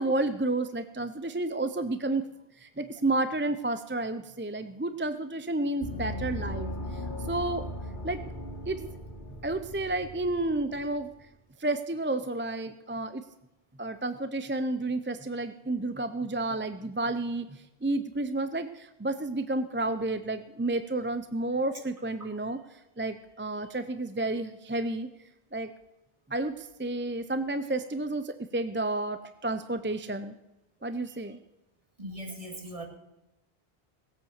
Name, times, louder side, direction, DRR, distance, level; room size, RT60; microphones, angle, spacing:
voice 1, 0.0-2.2 2.6-6.7 7.3-7.6 8.0-8.2 8.7-8.9 9.4-11.1 11.6-13.2 13.8-17.5 17.8-22.6 23.0-25.1 25.5-25.7 26.3-30.3 30.8-31.4, right 2 dB, 15° right, 10 dB, 0.5 m, -31 dB
Gong, 5.8-11.1, left 1 dB, 50° left, 2.3 m, -38 dB
voice 2, 32.0-32.8, right 1 dB, 35° right, 1 dB, 2.5 m, -39 dB
18.5 x 8.5 x 6.5 m, 0.95 s
omnidirectional pair, 1.1 m